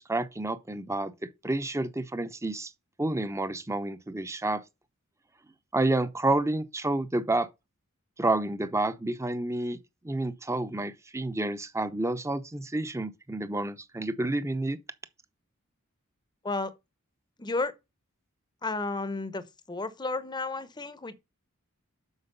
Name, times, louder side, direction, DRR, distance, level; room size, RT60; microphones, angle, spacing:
voice 1, 0.0-2.7 3.0-4.6 5.7-7.5 8.2-9.8 10.0-14.8, right 2 dB, 15° right, 0.7 m, -29 dB
voice 2, 17.4-17.7 18.6-21.1, left 3 dB, 20° left, 0.8 m, -32 dB
8.1 x 6.1 x 5.5 m
head